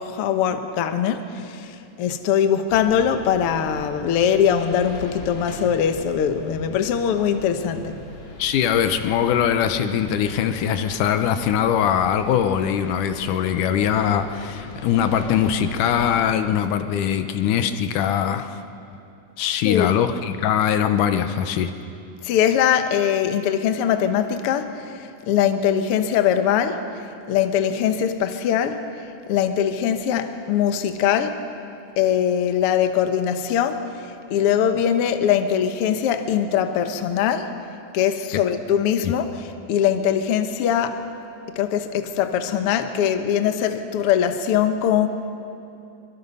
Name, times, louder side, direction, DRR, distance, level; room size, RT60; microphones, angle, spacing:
voice 1, 0.0-7.9 19.6-19.9 22.2-26.9 27.3-28.9 29.3-31.4 32.0-37.6 37.9-41.0 41.5-45.1, left 9 dB, 60° left, 7 dB, 1.6 m, -22 dB
sound 1, 2.7-16.3, left 2 dB, 45° left, 2.7 m, -40 dB
voice 2, 8.4-18.5 19.4-21.7 39.0-39.1, left 9 dB, 80° left, 9 dB, 2.4 m, -22 dB
24.0 x 23.5 x 5.5 m, 2.8 s
omnidirectional pair, 3.6 m